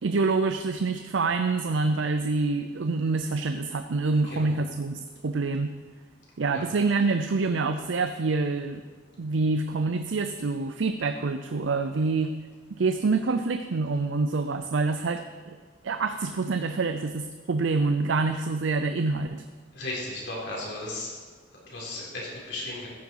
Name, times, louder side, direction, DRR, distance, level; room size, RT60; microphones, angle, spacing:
voice 1, 0.0-5.7 6.4-8.8 9.2-12.4 12.7-15.6 15.8-19.4, right 3 dB, 80° right, 8 dB, 0.5 m, -26 dB
voice 2, 4.2-4.5 6.5-6.6 19.7-21.2 21.5-22.9, left 2 dB, 70° left, -5 dB, 4.2 m, -35 dB
14.5 x 9.3 x 4.7 m, 1.5 s
head